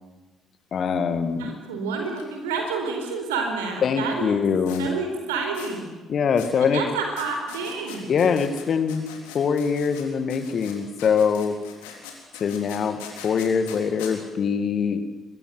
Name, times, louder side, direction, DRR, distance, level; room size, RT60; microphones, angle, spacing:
voice 1, 0.7-1.6 3.8-4.9 6.1-6.8 8.1-9.0 9.3-11.6 12.4-15.0, left 6 dB, 50° left, 11 dB, 2.1 m, -23 dB
voice 2, 1.4-4.3 4.8-5.9 6.6-8.1, right 4 dB, 80° right, 3 dB, 4.5 m, -29 dB
sound 1, 2.0-2.2 2.5-2.6 4.7-4.8 5.5-5.7 6.4-6.5 7.2-10.0 10.3-14.1, left 8 dB, 75° left, 3.9 m, -41 dB
24.0 x 21.5 x 7.8 m, 1.2 s
figure-of-eight pair, 45°, 0 cm